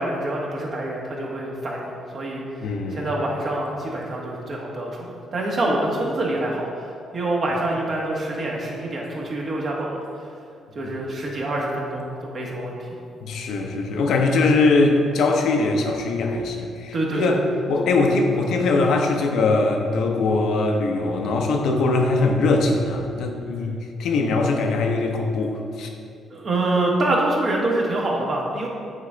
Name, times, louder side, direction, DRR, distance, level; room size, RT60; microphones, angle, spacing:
voice 1, 0.0-2.4 2.9-6.7 7.1-10.0 10.7-12.9 16.9-17.4 26.3-28.7, right 2 dB, 50° right, -2 dB, 1.3 m, -26 dB
voice 2, 2.6-3.1 10.8-10.9 13.2-17.4 17.7-25.9, left 3 dB, 75° left, 3 dB, 0.7 m, -21 dB
8.6 x 3.6 x 3.9 m, 2.4 s
cardioid pair, 90°, 0 cm